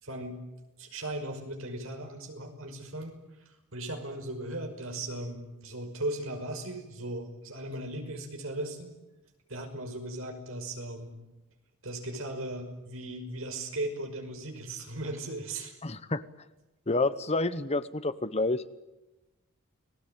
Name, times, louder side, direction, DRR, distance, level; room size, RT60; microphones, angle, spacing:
voice 1, 0.0-0.4 0.8-3.2 3.5-8.9 9.5-11.2 11.8-15.8, right 1 dB, 65° right, 4 dB, 5.6 m, -37 dB
voice 2, 15.8-16.2 16.9-18.6, left 2 dB, 30° left, 14 dB, 0.9 m, -28 dB
29.5 x 19.5 x 9.3 m, 1.0 s
head